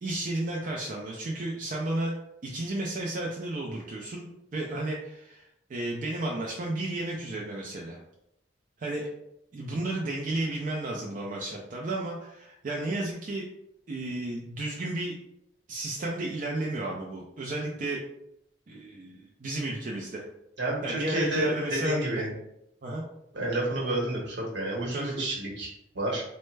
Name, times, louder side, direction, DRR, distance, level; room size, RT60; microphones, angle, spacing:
voice 1, 0.0-2.1 2.4-4.2 4.5-8.0 8.8-9.1 9.5-13.5 13.9-15.2 15.7-18.0 18.7-20.2 20.8-22.0 22.8-23.0 24.9-25.3, right 2 dB, 45° right, -2 dB, 0.4 m, -33 dB
voice 2, 20.6-22.3 23.3-26.2, right 1 dB, 75° right, -3 dB, 1.1 m, -30 dB
3.1 x 2.1 x 3.2 m, 0.80 s
head